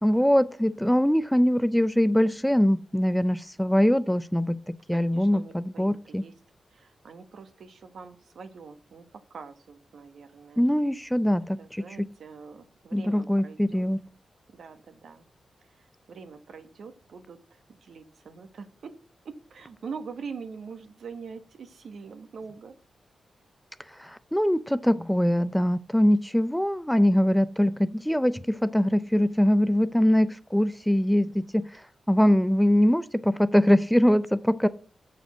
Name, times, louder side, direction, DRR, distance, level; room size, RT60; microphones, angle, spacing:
voice 1, 0.0-6.2 10.6-12.1 12.9-14.0 24.0-31.7 32.1-34.7, equal, 5° left, 0.4 m, -23 dB
voice 2, 4.9-6.3 6.7-10.7 11.6-13.8 14.5-15.2 15.8-19.0 19.2-22.7, right 5 dB, 75° right, 1.2 m, -44 dB
6.8 x 6.3 x 7.2 m
cardioid pair, 90°, 0 cm